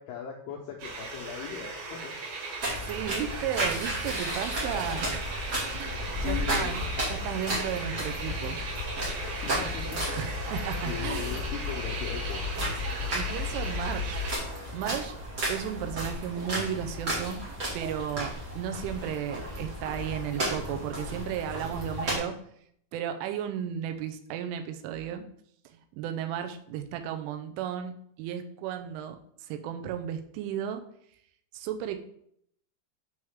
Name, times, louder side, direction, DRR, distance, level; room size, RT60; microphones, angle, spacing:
voice 1, 0.0-2.1 4.7-5.1 6.2-6.8 9.4-10.2 10.9-12.5, left 7 dB, 85° left, 0 dB, 2.3 m, -38 dB
sound 1, 0.8-14.4, left 1 dB, 65° right, 3.8 m, -36 dB
sound 2, 2.6-22.2, right 1 dB, 40° right, 1.5 m, -34 dB
voice 2, 2.9-5.2 5.7-8.6 10.2-11.3 12.6-12.7 13.1-15.2 15.5-17.5 17.7-22.4 22.9-25.3 25.7-30.8 31.5-32.0, right 9 dB, 85° right, 7 dB, 3.1 m, -34 dB
7.2 x 6.3 x 3.6 m, 0.68 s
omnidirectional pair, 5.7 m